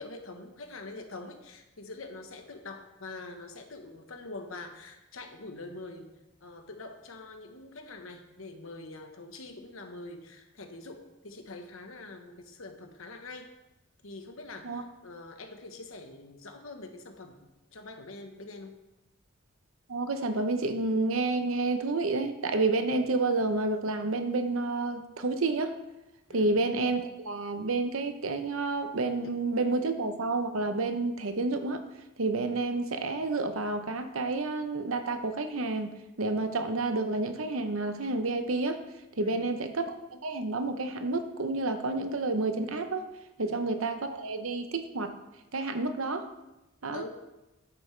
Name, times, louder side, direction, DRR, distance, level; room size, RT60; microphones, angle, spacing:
voice 1, 0.0-6.1 6.4-13.5 14.0-18.8 26.3-26.5 39.2-39.4 43.4-43.6 46.9-47.1, left 2 dB, 80° left, 5 dB, 1.2 m, -44 dB
voice 2, 19.9-25.8 26.3-31.8 32.2-35.9 36.2-38.8 39.2-43.1 43.4-45.1 45.5-46.3 46.8-47.1, right 3 dB, 80° right, 8 dB, 0.8 m, -29 dB
9.6 x 8.5 x 3.3 m, 0.98 s
head